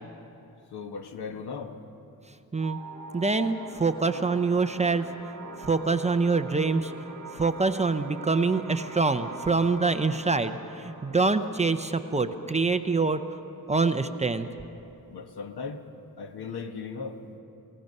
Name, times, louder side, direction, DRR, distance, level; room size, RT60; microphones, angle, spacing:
voice 1, 0.7-1.8 13.6-13.7 15.1-15.8 16.2-17.4, left 5 dB, 85° left, 6 dB, 1.5 m, -37 dB
sound 1, 2.6-13.6, right 4 dB, 55° right, 3.0 m, -44 dB
voice 2, 3.1-5.1 5.6-6.9 7.3-13.2 13.7-14.5, right 4 dB, 20° right, 8 dB, 0.5 m, -25 dB
29.0 x 17.5 x 5.4 m, 3.0 s
wide cardioid pair, 180°, 38 cm